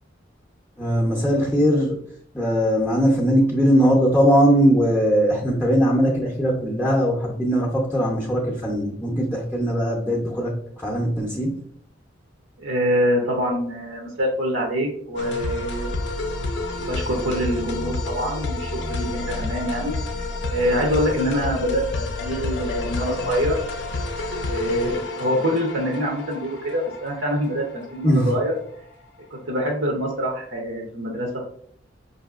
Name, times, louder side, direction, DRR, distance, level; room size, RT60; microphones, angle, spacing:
voice 1, 0.8-2.0 2.3-11.5 28.0-28.3, equal, 5° left, -4 dB, 0.6 m, -20 dB
voice 2, 12.6-15.9 16.8-23.6 24.5-28.5 29.3-31.4, equal, 80° right, -1 dB, 0.7 m, -25 dB
sound 1, 15.2-28.5, left 2 dB, 60° left, 0.5 m, -29 dB
5.1 x 2.7 x 2.4 m, 0.63 s
head